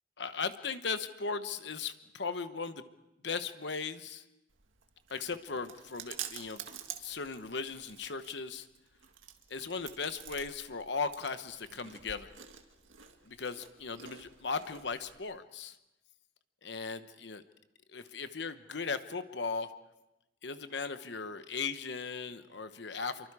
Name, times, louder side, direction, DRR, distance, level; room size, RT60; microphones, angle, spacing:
voice 1, 0.2-2.9 3.2-4.2 5.1-6.6 7.0-8.7 9.5-12.3 13.3-15.8 16.6-17.4 17.9-19.7 20.4-23.3, left 4 dB, 60° left, 10 dB, 1.0 m, -37 dB
Chewing mastication, 4.5-15.2, right 9 dB, 90° right, 2.0 m, -49 dB
27.5 x 23.5 x 4.9 m, 0.94 s
head